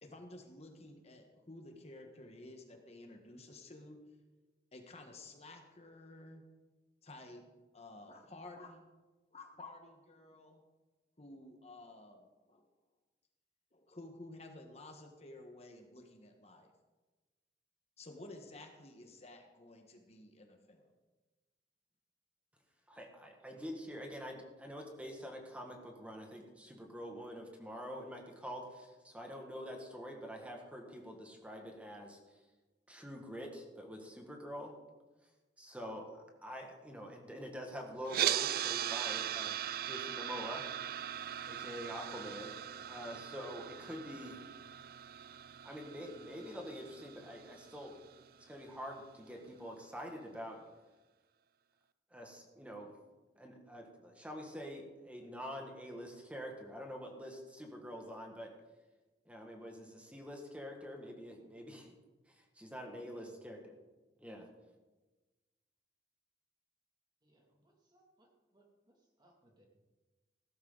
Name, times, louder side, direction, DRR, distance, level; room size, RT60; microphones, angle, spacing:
voice 1, 0.0-4.0 4.7-6.4 7.0-7.4 7.7-8.9 9.3-10.6 11.2-12.6 13.7-16.7 18.0-20.9, left 2 dB, 35° left, 4 dB, 1.4 m, -53 dB
voice 2, 22.9-32.4 32.9-34.7 35.6-39.6 39.8-40.9 41.5-44.4 45.6-48.0 48.4-50.6 52.1-53.0 53.4-58.5 59.2-61.9 62.3-63.7 64.2-64.5, equal, 10° right, 1 dB, 1.8 m, -46 dB
sound 1, 38.1-48.2, right 11 dB, 55° right, 0.4 m, -39 dB
voice 3, 62.7-63.5 67.2-69.6, right 1 dB, 25° right, 0 dB, 2.5 m, -68 dB
16.0 x 13.0 x 4.0 m, 1.2 s
head